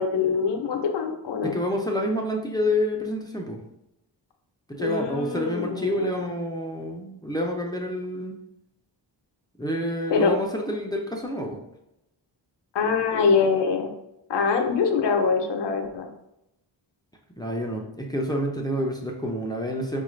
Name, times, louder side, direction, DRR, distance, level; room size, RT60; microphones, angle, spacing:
voice 1, 0.0-1.6 4.8-6.3 10.1-10.3 12.7-13.9 14.3-16.1, left 5 dB, 60° left, 4 dB, 0.7 m, -24 dB
voice 2, 1.4-3.6 4.7-8.4 9.6-11.6 17.4-20.0, equal, 10° left, 0 dB, 0.5 m, -28 dB
5.2 x 2.5 x 3.1 m, 0.84 s
cardioid pair, 85°, 47 cm